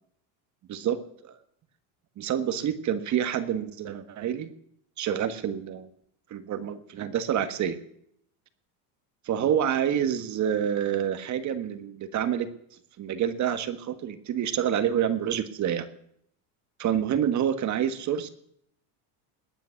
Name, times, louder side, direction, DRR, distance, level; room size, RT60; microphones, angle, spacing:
voice 1, 0.7-1.4 2.2-4.5 5.0-5.9 6.3-7.8 9.2-12.5 13.0-15.9 16.8-18.3, right 9 dB, 40° right, 11 dB, 1.5 m, -27 dB
20.5 x 9.2 x 7.1 m, 0.70 s
supercardioid pair, 120°, 43 cm